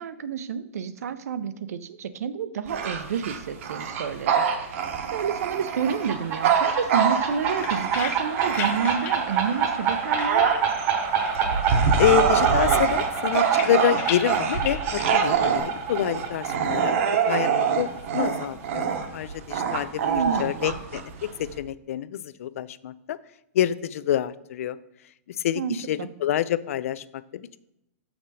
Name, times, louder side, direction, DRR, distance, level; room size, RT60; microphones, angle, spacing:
voice 1, 0.0-4.7 5.1-10.5 20.1-20.8 25.5-26.1, right 7 dB, 80° right, 13 dB, 0.6 m, -29 dB
Bark / Growling, 2.7-9.2 9.7-21.6, right 6 dB, 55° right, 0.9 m, -25 dB
sound 1, 5.7-19.1, right 7 dB, 30° right, 0.9 m, -28 dB
sound 2, 7.2-10.9 11.2-12.1 12.4-15.6, left 7 dB, 25° left, 0.6 m, -37 dB
voice 2, 11.6-17.9 18.1-20.0 20.4-23.2 23.5-24.8 25.3-27.6, left 10 dB, 65° left, 17 dB, 0.4 m, -27 dB
6.2 x 6.0 x 4.0 m, 0.84 s
hypercardioid pair, 160°, 8 cm